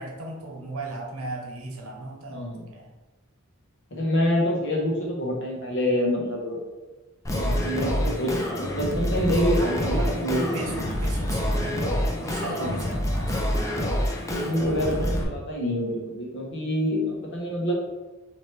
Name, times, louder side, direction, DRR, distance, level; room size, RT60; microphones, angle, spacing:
voice 1, 0.0-2.9 9.5-10.2 10.5-13.8, right 2 dB, 85° right, 1 dB, 0.9 m, -36 dB
voice 2, 2.3-2.7 3.9-6.6 7.3-10.5 12.6-12.7 14.3-17.7, equal, 60° left, -2 dB, 1.2 m, -26 dB
Singing, 7.2-15.2, equal, 15° left, 0.5 m, -27 dB
4.3 x 2.9 x 3.3 m, 1.2 s
head